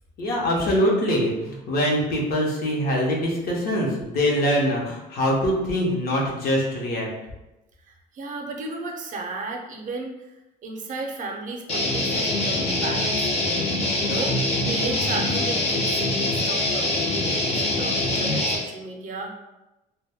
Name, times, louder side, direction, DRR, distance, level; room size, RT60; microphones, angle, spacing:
voice 1, 0.2-7.1, equal, 65° left, -2 dB, 0.8 m, -23 dB
voice 2, 7.9-10.3 10.6-13.4 14.0-19.3, right 3 dB, 50° right, 1 dB, 0.5 m, -34 dB
Guitar, 11.7-18.6, left 2 dB, 40° left, 0.6 m, -24 dB
2.2 x 2.1 x 3.4 m, 0.99 s
cardioid pair, 110°, 17 cm